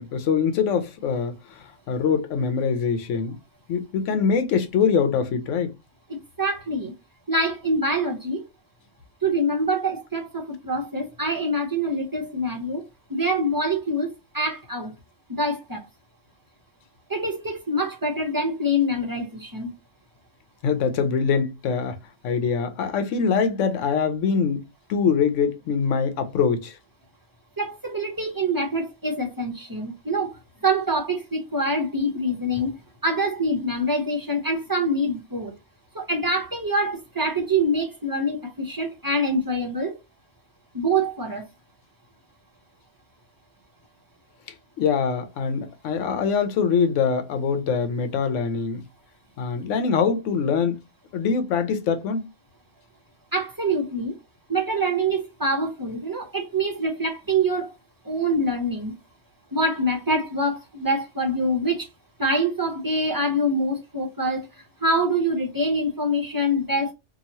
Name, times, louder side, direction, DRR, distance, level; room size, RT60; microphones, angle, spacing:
voice 1, 0.0-3.4 3.7-5.7 20.6-22.0 22.2-26.8 44.8-48.8 49.4-50.8 51.1-52.3, left 6 dB, 80° left, 1.0 m, -23 dB
voice 2, 6.1-6.9 7.3-8.4 9.2-12.8 13.1-14.9 15.4-15.8 17.1-19.7 27.6-30.3 30.6-32.7 33.0-35.5 35.9-40.0 40.7-41.4 53.3-54.1 54.5-57.7 58.0-59.0 59.5-61.9 62.2-64.5 64.8-66.9, right 1 dB, 25° right, 0.5 m, -25 dB
2.9 x 2.3 x 2.7 m
omnidirectional pair, 1.3 m